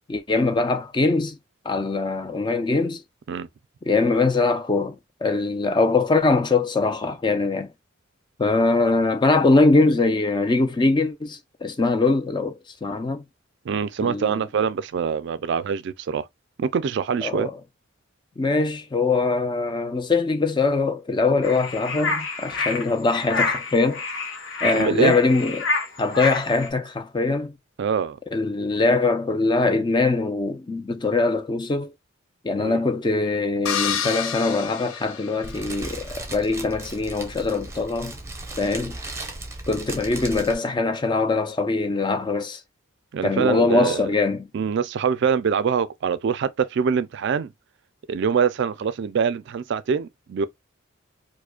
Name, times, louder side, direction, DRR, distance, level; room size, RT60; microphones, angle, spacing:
voice 1, 0.1-1.4 1.7-3.0 3.9-7.7 8.4-13.2 14.0-14.4 17.2-17.6 18.4-24.0 24.6-25.7 26.0-27.5 28.3-31.9 32.4-38.2 38.6-39.0 39.7-42.6 43.2-44.5, left 3 dB, 20° left, 0.4 m, -22 dB
voice 2, 13.7-16.3 16.6-17.5 24.7-25.1 27.8-28.2 32.6-32.8 43.1-44.1 44.5-47.5 48.1-50.5, right 6 dB, 60° right, 0.3 m, -24 dB
sound 1, 21.4-26.7, left 3 dB, 65° left, 0.9 m, -28 dB
sound 2, 33.7-35.9, left 8 dB, 85° left, 0.6 m, -29 dB
Fire, 35.4-40.5, right 2 dB, 15° right, 0.7 m, -36 dB
4.8 x 2.1 x 2.2 m
head